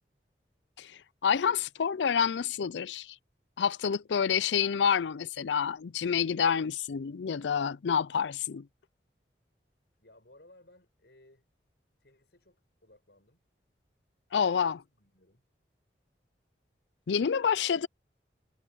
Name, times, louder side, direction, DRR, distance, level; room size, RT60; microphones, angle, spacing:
voice 1, 0.8-3.2 3.6-8.7 14.3-14.8 17.1-17.9, left 7 dB, 90° left, 0.4 m, -28 dB
voice 2, 10.0-11.5 12.0-13.4 14.7-15.4 17.5-17.6, left 1 dB, 70° left, 6.6 m, -60 dB
head